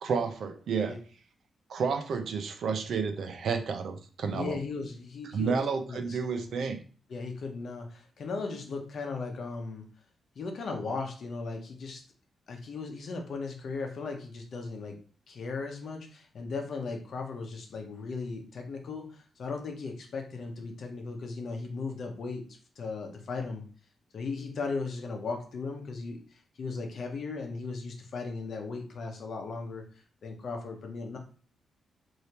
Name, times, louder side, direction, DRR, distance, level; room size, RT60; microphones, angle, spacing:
voice 1, 0.0-0.9 1.7-4.6 5.3-6.8, right 5 dB, 70° right, 6 dB, 0.5 m, -31 dB
voice 2, 4.3-5.6 5.9-6.5 7.1-9.9 10.4-12.0 12.5-23.6 24.1-29.8 30.2-31.2, left 4 dB, 60° left, 3 dB, 0.8 m, -37 dB
3.3 x 2.7 x 2.8 m, 0.40 s
cardioid pair, 115°, 0 cm